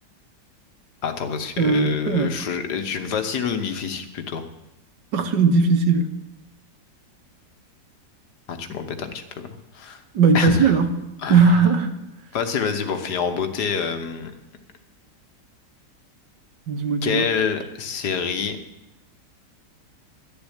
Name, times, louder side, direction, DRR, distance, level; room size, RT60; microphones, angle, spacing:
voice 1, 1.0-4.4 8.5-9.4 9.7-10.0 10.3-10.7 11.2-11.6 12.3-14.3 17.0-18.6, left 6 dB, 70° left, 8 dB, 1.7 m, -27 dB
voice 2, 1.6-2.4 5.1-6.1 10.1-10.9 11.3-12.0 16.7-17.3, right 4 dB, 80° right, 8 dB, 1.8 m, -18 dB
12.5 x 7.1 x 9.8 m, 0.91 s
omnidirectional pair, 1.9 m